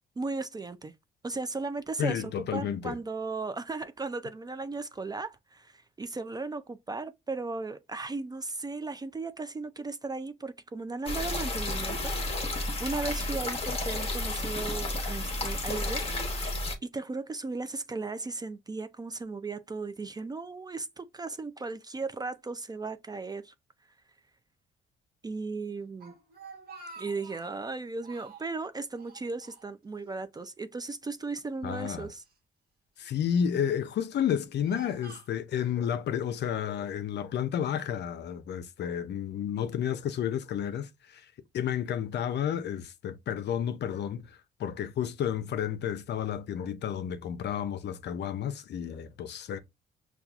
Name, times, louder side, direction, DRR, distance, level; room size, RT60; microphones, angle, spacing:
voice 1, 0.2-0.9 1.2-16.0 16.3-16.6 16.9-23.5 25.2-26.1 27.0-32.2, right 3 dB, 20° right, 0.3 m, -36 dB
voice 2, 2.0-3.0 31.6-32.1 33.0-41.2 41.5-49.6, left 9 dB, 60° left, 0.5 m, -31 dB
sound 1, 11.1-16.8, left 2 dB, 30° left, 1.0 m, -32 dB
Speech, 25.8-27.7 28.0-28.6 29.0-30.1 30.3-30.5 31.3-32.3 33.0-33.5 34.1-35.8, right 4 dB, 50° right, 1.2 m, -50 dB
5.6 x 2.3 x 2.3 m
cardioid pair, 90°, 20 cm